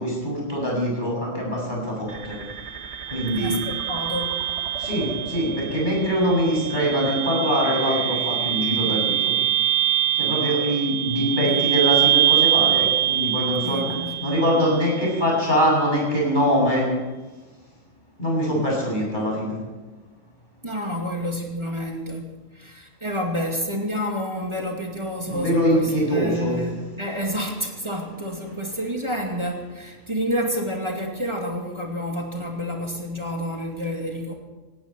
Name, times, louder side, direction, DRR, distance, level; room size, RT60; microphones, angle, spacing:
voice 1, 0.0-2.4 3.1-3.6 4.8-9.3 10.2-13.9 14.2-16.9 18.2-19.6 25.2-26.6, equal, 40° left, -3 dB, 7.5 m, -23 dB
sound 1, 2.1-15.1, right 12 dB, 60° right, 1.7 m, -24 dB
voice 2, 3.3-4.4 11.3-11.7 13.6-14.7 20.6-34.3, equal, 20° right, 0 dB, 2.6 m, -29 dB
18.5 x 17.0 x 4.5 m, 1.2 s
omnidirectional pair, 1.3 m